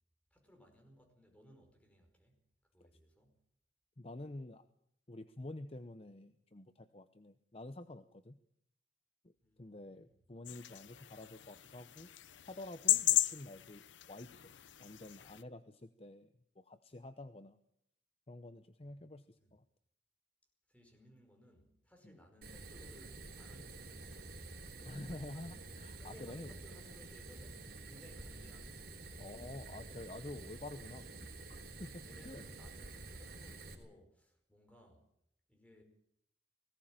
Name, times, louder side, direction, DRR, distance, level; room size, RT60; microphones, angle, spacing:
voice 1, 0.3-2.4 2.7-3.4 9.4-10.2 18.8-19.0 19.3-19.5 20.7-25.5 26.0-29.3 29.8-30.4 32.0-35.1 35.5-35.8, equal, 5° left, 3 dB, 5.1 m, -62 dB
voice 2, 4.0-4.7 5.1-8.4 9.2-9.3 9.6-12.1 12.5-14.5 14.8-17.6 18.3-19.6 22.0-22.2 24.8-26.6 29.2-31.1 31.5-32.4, left 2 dB, 35° left, 10 dB, 0.8 m, -49 dB
sound 1, 10.5-15.4, left 14 dB, 90° left, 0.7 m, -36 dB
Fire, 22.4-33.7, right 2 dB, 55° right, 4.2 m, -49 dB
19.0 x 17.5 x 8.9 m, 0.73 s
head